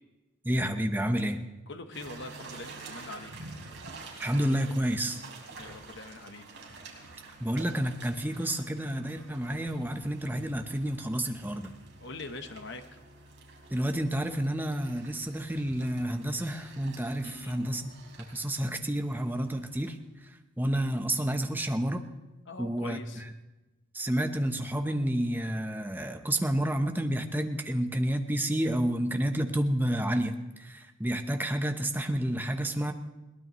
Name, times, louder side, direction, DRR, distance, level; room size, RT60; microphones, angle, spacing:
voice 1, 0.4-1.4 4.2-5.2 7.4-11.7 13.7-17.9 18.3-20.0 20.6-22.0 22.6-23.2 23.9-32.9, right 1 dB, 10° right, 6 dB, 0.8 m, -30 dB
voice 2, 1.7-3.5 5.6-6.5 12.0-13.0 17.2-17.7 22.5-23.2, left 2 dB, 60° left, 7 dB, 1.1 m, -43 dB
sound 1, 1.9-20.0, right 3 dB, 65° right, 3.5 m, -49 dB
21.5 x 18.5 x 3.1 m, 1.1 s
head